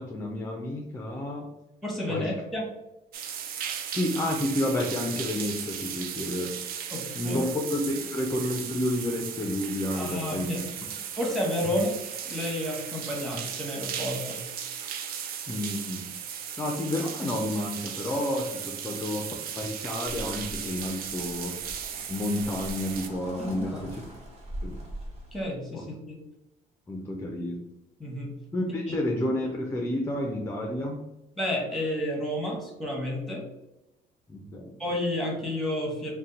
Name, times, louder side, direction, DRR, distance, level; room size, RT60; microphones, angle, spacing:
voice 1, 0.0-1.5 2.1-2.3 3.9-6.5 7.1-10.9 15.5-16.0 16.6-19.3 19.5-21.6 22.1-24.0 24.6-24.8 25.7-25.8 26.9-27.6 28.5-31.0 34.3-34.7, left 1 dB, 15° left, 2 dB, 0.4 m, -30 dB
voice 2, 1.8-2.7 6.9-7.5 9.9-10.6 11.2-11.9 12.2-14.4 23.6-23.9 25.3-26.2 28.0-28.3 28.9-29.0 31.4-33.5 34.8-36.1, left 1 dB, ahead, -1 dB, 1.0 m, -31 dB
sound 1, 3.1-23.1, right 8 dB, 60° right, 0.4 m, -36 dB
sound 2, 20.1-25.5, equal, 40° right, 1.0 m, -42 dB
2.7 x 2.1 x 3.8 m, 0.93 s
cardioid pair, 110°, 17 cm